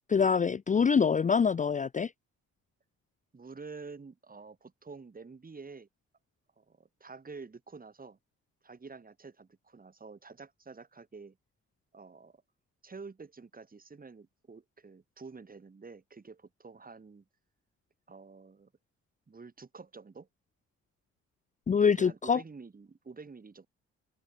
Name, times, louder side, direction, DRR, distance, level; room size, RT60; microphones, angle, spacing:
voice 1, 0.1-2.1 21.7-22.4, left 6 dB, 25° left, 0.6 m, -25 dB
voice 2, 3.3-5.9 6.6-8.2 8.6-11.4 11.9-12.4 12.8-17.2 18.1-18.7 19.3-20.3 21.9-23.7, right 4 dB, 30° right, 4.6 m, -48 dB
cardioid pair, 90°, 30 cm